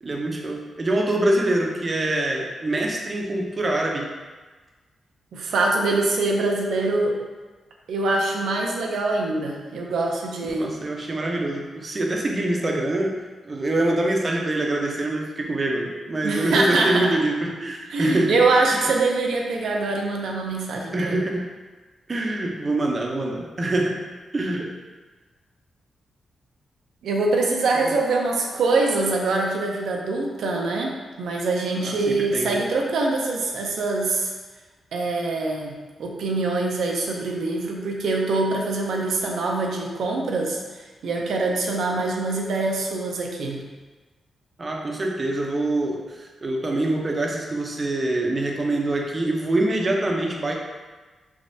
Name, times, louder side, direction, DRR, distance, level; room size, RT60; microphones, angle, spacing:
voice 1, 0.0-4.1 10.6-13.2 13.4-18.4 18.7-18.9 20.9-21.4 22.1-24.0 24.3-24.7 27.7-28.0 31.8-32.6 44.6-50.5, right 1 dB, 35° right, 0 dB, 0.5 m, -25 dB
voice 2, 5.3-7.2 7.9-10.8 16.2-17.1 17.9-21.2 27.0-34.3 34.9-43.6, right 3 dB, 85° right, 0 dB, 0.5 m, -24 dB
3.4 x 3.0 x 2.6 m, 1.3 s
cardioid pair, 95°, 0 cm